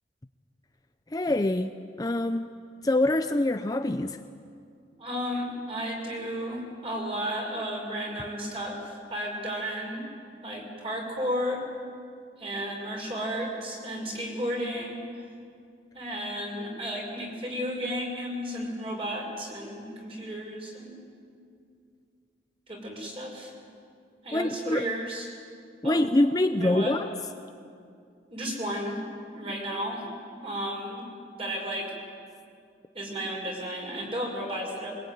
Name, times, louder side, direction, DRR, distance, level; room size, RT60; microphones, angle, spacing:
voice 1, 1.1-2.5 2.8-4.2 24.3-24.9 25.8-27.1, left 1 dB, 20° left, 8 dB, 0.5 m, -25 dB
voice 2, 5.0-10.1 10.4-11.6 12.4-15.3 15.9-21.0 22.7-23.5 24.2-25.3 25.8-26.0 26.6-27.0 28.3-29.0 29.3-30.1 30.4-31.0 31.3-31.9 32.9-34.9, equal, 30° right, -1 dB, 5.5 m, -33 dB
22.5 x 21.5 x 9.4 m, 2.4 s
head